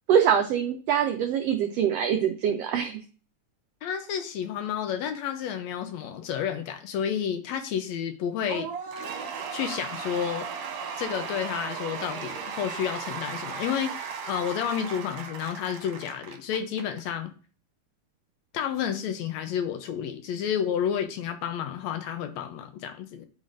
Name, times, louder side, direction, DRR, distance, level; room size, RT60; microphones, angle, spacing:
voice 1, 0.1-3.0, right 8 dB, 85° right, 5 dB, 1.4 m, -24 dB
voice 2, 3.8-8.7 9.5-10.5 11.0-17.3 18.5-23.2, left 8 dB, 75° left, 7 dB, 1.8 m, -30 dB
Cheering / Applause / Crowd, 8.5-17.1, right 6 dB, 65° right, 2.1 m, -36 dB
9.3 x 5.0 x 2.5 m, 0.38 s
omnidirectional pair, 3.4 m